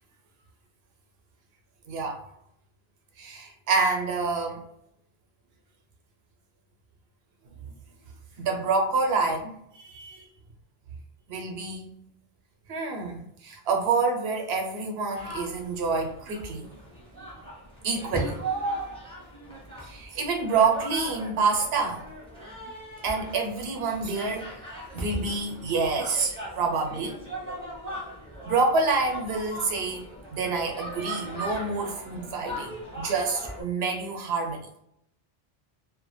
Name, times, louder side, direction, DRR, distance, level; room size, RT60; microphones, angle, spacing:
voice 1, 1.9-2.2 3.2-4.6 8.4-9.5 9.8-10.3 11.3-12.0 12.7-16.7 17.8-18.4 19.8-22.0 23.0-24.5 24.9-27.2 28.4-30.0 30.3-34.6, right 4 dB, 75° right, 2 dB, 0.8 m, -27 dB
sound 1, 15.1-33.6, right 1 dB, 5° left, 0.7 m, -38 dB
2.2 x 2.1 x 3.0 m, 0.74 s
omnidirectional pair, 1.1 m